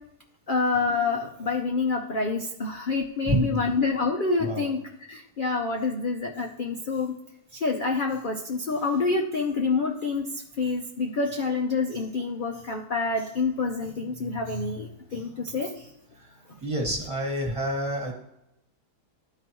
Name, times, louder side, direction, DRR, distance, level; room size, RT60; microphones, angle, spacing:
voice 1, 0.5-4.8 5.1-7.1 7.6-10.2 10.6-15.7, left 4 dB, 60° left, 1 dB, 0.5 m, -27 dB
voice 2, 3.2-3.7 4.4-4.7 16.2-18.1, right 1 dB, 20° right, 0 dB, 1.7 m, -28 dB
12.5 x 4.9 x 2.9 m, 0.85 s
omnidirectional pair, 1.8 m